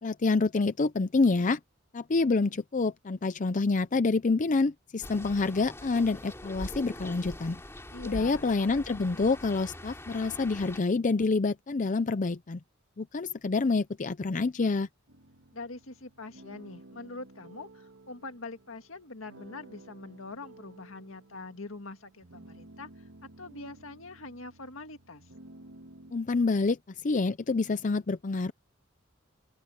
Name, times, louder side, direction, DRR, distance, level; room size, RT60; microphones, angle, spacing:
voice 1, 0.0-1.6 1.9-7.6 8.0-12.6 13.0-14.9 26.1-28.5, left 3 dB, 40° left, 0.5 m, -27 dB
sound 1, 5.0-10.8, left 1 dB, 15° left, 3.4 m, -43 dB
voice 2, 7.9-8.5 15.5-22.9 23.4-25.2, left 3 dB, 75° left, 1.9 m, -44 dB
sound 2, 15.1-26.1, right 2 dB, 85° right, 1.6 m, -53 dB
open air
head